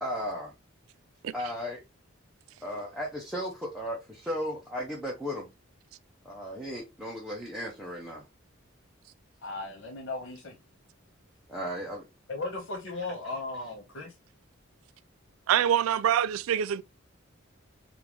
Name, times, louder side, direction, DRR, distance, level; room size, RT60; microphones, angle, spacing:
voice 1, 0.0-0.5 1.3-1.8 2.6-5.5 6.2-8.2 11.5-12.1, equal, ahead, 0.6 m, -35 dB
voice 2, 9.4-10.6 12.3-14.2, left 3 dB, 60° left, 0.9 m, -36 dB
voice 3, 15.5-16.8, right 9 dB, 80° right, 0.3 m, -25 dB
3.6 x 2.5 x 2.9 m
head